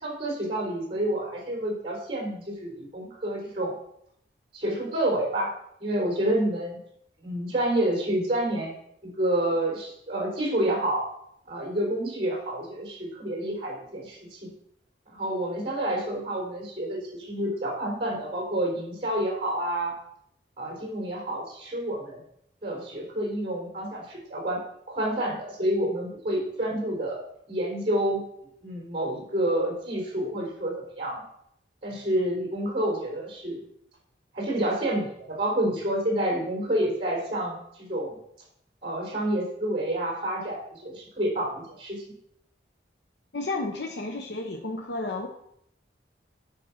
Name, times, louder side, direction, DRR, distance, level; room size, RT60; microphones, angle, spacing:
voice 1, 0.0-3.7 4.5-5.5 5.8-6.8 7.2-8.7 9.0-11.0 11.5-14.5 15.1-19.9 20.6-22.2 22.6-24.6 24.9-27.2 27.5-28.2 28.6-31.2 31.8-33.6 34.3-38.1 38.8-42.0, right 1 dB, 30° right, -1 dB, 3.7 m, -28 dB
voice 2, 43.3-45.3, left 2 dB, 75° left, 2 dB, 0.8 m, -32 dB
9.1 x 5.2 x 5.8 m, 0.73 s
head